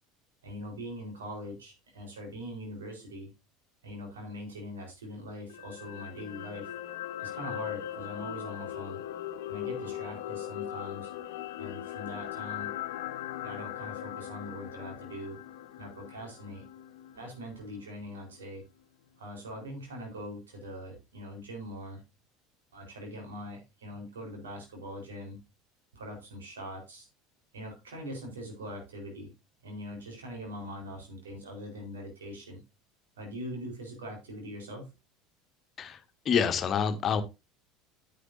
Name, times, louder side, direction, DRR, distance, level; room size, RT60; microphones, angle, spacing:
voice 1, 0.4-3.3 3.8-6.7 7.2-9.0 9.5-11.1 11.6-12.7 13.4-15.4 15.8-16.7 17.1-18.6 19.2-22.0 22.7-25.4 25.9-27.1 27.5-29.3 29.6-32.6 33.2-34.9, equal, 85° right, 4.2 m, -42 dB
sound 1, 5.5-17.8 18.2-18.3, left 12 dB, 75° left, 0.9 m, -39 dB
voice 2, 36.2-37.2, left 7 dB, 40° left, 1.4 m, -27 dB
10.0 x 8.8 x 2.7 m
hypercardioid pair, 75°, 0 cm